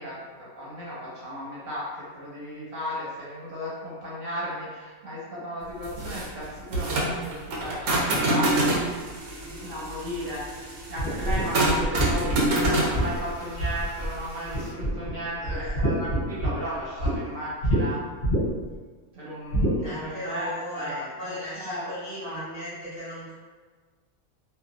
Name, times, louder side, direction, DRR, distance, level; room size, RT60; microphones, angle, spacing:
voice 1, 0.0-8.8 9.6-18.0 19.1-21.0 21.2-21.9 22.2-22.4, equal, 70° right, -8 dB, 1.5 m, -35 dB
sound 1, 5.8-14.7, right 1 dB, 90° right, 1.1 m, -27 dB
voice 2, 9.4-9.7 15.4-15.8 19.8-23.3, equal, 35° right, -11 dB, 0.3 m, -37 dB
sound 2, 11.0-14.2 14.5-15.1 15.4-17.1 17.6-17.8 18.2-18.7 19.5-19.8, right 1 dB, 50° left, 0.7 m, -26 dB
2.6 x 2.6 x 2.4 m, 1.4 s
omnidirectional pair, 1.5 m